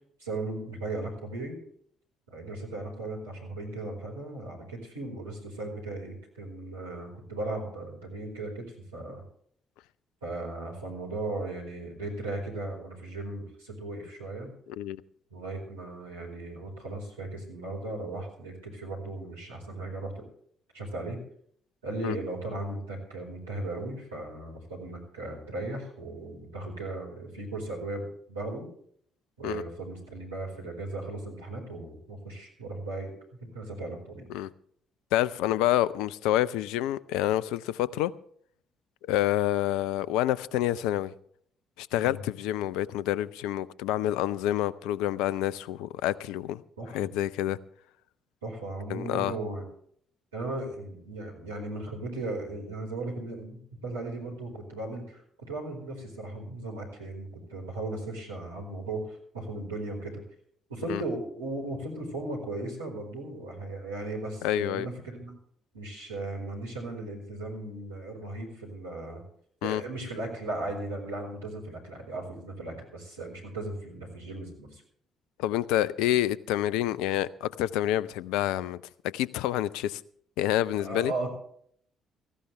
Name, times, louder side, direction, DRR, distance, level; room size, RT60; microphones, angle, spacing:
voice 1, 0.2-1.6 2.3-9.2 10.2-14.5 15.3-20.2 20.7-21.2 21.8-28.7 29.4-33.1 33.4-34.3 42.0-42.2 46.8-47.1 48.4-49.6 50.3-55.2 55.5-60.2 60.7-65.3 65.7-69.2 69.6-74.8 80.8-81.3, right 2 dB, 80° right, 4.6 m, -37 dB
voice 2, 35.1-38.1 39.1-41.1 41.8-46.6 46.9-47.6 48.9-49.3 60.9-61.0 64.4-64.9 69.6-69.8 75.4-78.8 79.1-80.0 80.4-81.1, left 13 dB, 65° left, 0.5 m, -28 dB
18.0 x 15.0 x 3.3 m
figure-of-eight pair, 45°, 0 cm